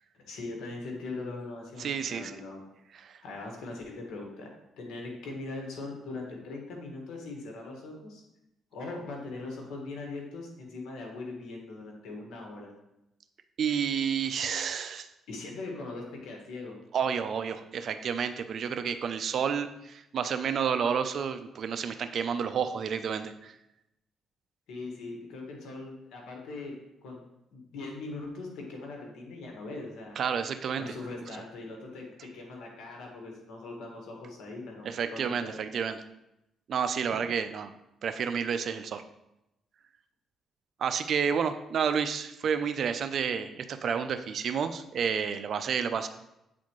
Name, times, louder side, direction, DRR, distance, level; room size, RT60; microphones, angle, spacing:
voice 1, 0.1-2.6 3.2-4.5 4.8-8.2 8.7-12.7 15.3-16.8 24.7-26.7 27.0-27.2 27.5-30.2 30.8-35.6, left 3 dB, 85° left, 0 dB, 1.7 m, -40 dB
voice 2, 1.8-2.4 3.0-3.2 13.6-15.1 16.9-23.5 30.2-30.8 34.8-36.0 36.7-37.7 38.0-39.0 40.8-46.1, right 7 dB, 60° right, 10 dB, 0.5 m, -30 dB
8.2 x 4.2 x 3.1 m, 0.88 s
cardioid pair, 90°, 0 cm